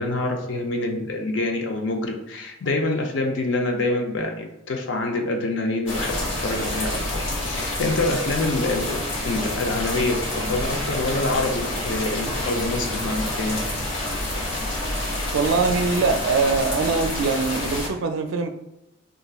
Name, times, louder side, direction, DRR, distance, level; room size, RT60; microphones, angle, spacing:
voice 1, 0.0-6.2 6.4-13.6, left 2 dB, 65° left, 0.5 m, -26 dB
sound 1, 5.9-17.9, left 1 dB, 90° left, 1.0 m, -28 dB
voice 2, 15.3-18.5, right 4 dB, 75° right, 0.4 m, -22 dB
3.9 x 2.4 x 2.3 m
head